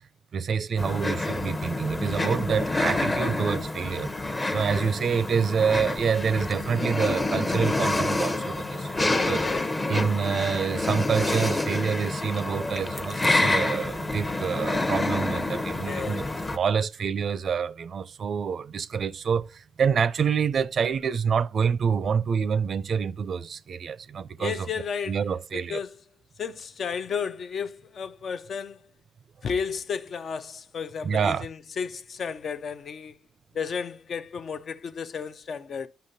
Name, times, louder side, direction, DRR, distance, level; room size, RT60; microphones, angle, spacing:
voice 1, 0.3-4.1 4.5-9.4 9.9-16.2 16.5-24.6 25.1-25.8 31.0-31.5, right 6 dB, 50° right, 0.4 m, -27 dB
sound 1, 0.8-16.6, left 2 dB, 20° left, 0.8 m, -28 dB
voice 2, 15.9-16.4 24.4-25.2 25.5-26.0 26.4-28.8 29.4-33.2 33.5-35.9, left 6 dB, 50° left, 0.5 m, -33 dB
10.0 x 5.6 x 2.7 m
cardioid pair, 90°, 0 cm